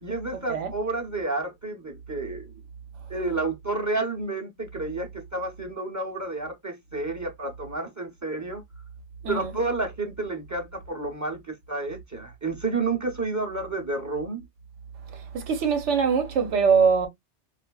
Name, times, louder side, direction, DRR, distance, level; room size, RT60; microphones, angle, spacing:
voice 1, 0.0-2.5 3.1-8.6 9.3-14.4, right 3 dB, 20° right, 0.6 m, -30 dB
voice 2, 15.1-17.1, right 5 dB, 90° right, 1.1 m, -23 dB
4.3 x 2.4 x 2.2 m
omnidirectional pair, 1.2 m